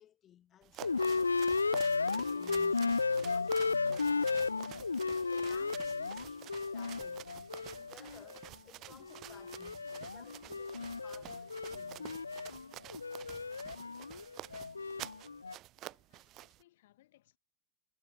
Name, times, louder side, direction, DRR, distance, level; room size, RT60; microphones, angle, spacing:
voice 1, 0.0-4.5 5.3-12.3, left 11 dB, 30° left, 6.0 m, -59 dB
sound 1, 0.6-16.6, right 16 dB, 35° right, 0.7 m, -50 dB
sound 2, 0.8-8.5 8.9-15.5, left 4 dB, 75° left, 0.5 m, -34 dB
voice 2, 15.7-17.4, left 15 dB, 55° left, 6.2 m, -68 dB
figure-of-eight pair, 90°, 0 cm